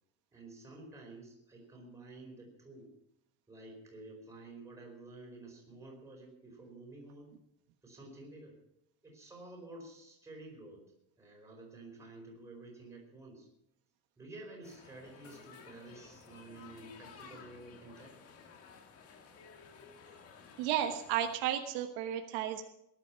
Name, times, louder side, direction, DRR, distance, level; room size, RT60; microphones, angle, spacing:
voice 1, 0.3-2.9 3.5-7.3 7.8-8.6 9.0-10.8 11.2-13.5 14.2-18.2, right 2 dB, 5° right, -1 dB, 4.7 m, -51 dB
sound 1, 14.6-21.4, left 5 dB, 35° left, 1.6 m, -55 dB
voice 2, 20.6-22.6, right 11 dB, 65° right, 5 dB, 1.4 m, -33 dB
18.5 x 11.0 x 5.8 m, 0.81 s
cardioid pair, 180°, 40 cm